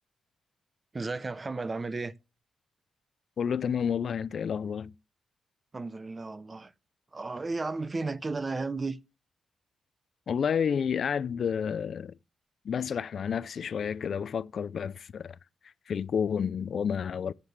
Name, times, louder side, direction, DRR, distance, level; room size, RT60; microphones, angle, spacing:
voice 1, 0.9-2.1 5.7-6.7 7.1-9.0, right 3 dB, 25° right, 0.6 m, -33 dB
voice 2, 3.4-4.9 10.3-12.1 12.6-15.4 15.9-17.3, left 7 dB, 60° left, 0.4 m, -30 dB
13.0 x 6.7 x 3.2 m
cardioid pair, 110°, 0 cm